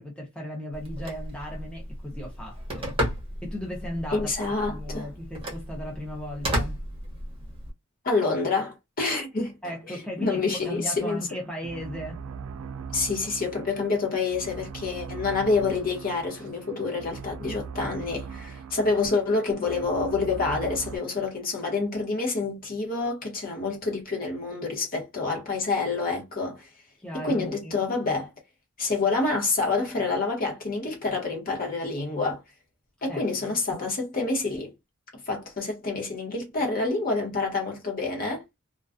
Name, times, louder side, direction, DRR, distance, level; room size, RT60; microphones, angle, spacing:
voice 1, 0.0-2.9 3.4-6.8 9.6-12.2 27.0-27.8 33.1-33.2, equal, 5° left, 0.6 m, -36 dB
Telephone, 0.7-7.7, equal, 25° right, 0.8 m, -34 dB
voice 2, 4.1-5.1 8.0-9.6 9.9-11.2 12.9-26.7 27.2-28.3 28.8-32.4 33.0-34.7 35.3-38.4, left 3 dB, 40° left, 1.0 m, -27 dB
sound 1, 11.0-21.0, right 6 dB, 75° right, 0.3 m, -40 dB
2.3 x 2.2 x 2.4 m
head